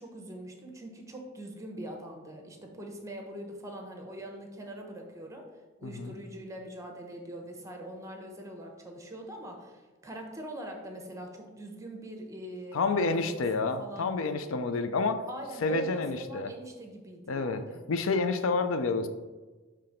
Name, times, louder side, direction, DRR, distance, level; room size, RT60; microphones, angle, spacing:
voice 1, 0.0-5.5 5.8-14.1 15.3-17.8, right 1 dB, 15° right, 2 dB, 0.8 m, -42 dB
voice 2, 5.8-6.1 12.7-15.2 15.6-16.5 17.3-17.6 17.9-19.1, left 3 dB, 85° left, 9 dB, 0.5 m, -29 dB
5.8 x 3.3 x 5.0 m, 1.3 s
head